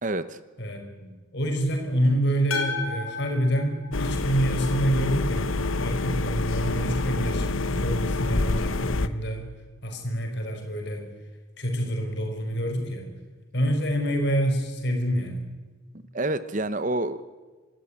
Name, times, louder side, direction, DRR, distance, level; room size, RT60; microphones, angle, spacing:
voice 1, 0.0-0.4 16.1-17.2, right 2 dB, 40° right, 14 dB, 0.9 m, -28 dB
voice 2, 0.6-9.5 9.8-11.0 11.6-13.1 13.5-15.4, equal, 55° left, 4 dB, 5.1 m, -27 dB
sound 1, 2.5-4.8, left 4 dB, 90° left, 5.5 m, -33 dB
sound 2, 3.9-9.1, left 2 dB, 75° left, 0.9 m, -27 dB
25.5 x 14.0 x 10.0 m, 1.3 s
head